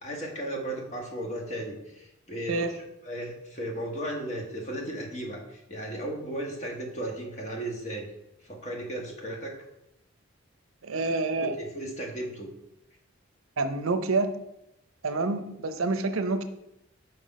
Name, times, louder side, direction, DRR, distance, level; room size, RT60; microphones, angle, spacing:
voice 1, 0.0-8.1 8.4-9.5 11.3-12.5, right 1 dB, 35° left, 0 dB, 1.3 m, -35 dB
voice 2, 2.5-2.8 10.8-11.6 13.6-14.4 15.0-16.4, right 3 dB, 80° right, 9 dB, 0.7 m, -27 dB
5.9 x 5.3 x 5.3 m, 0.86 s
head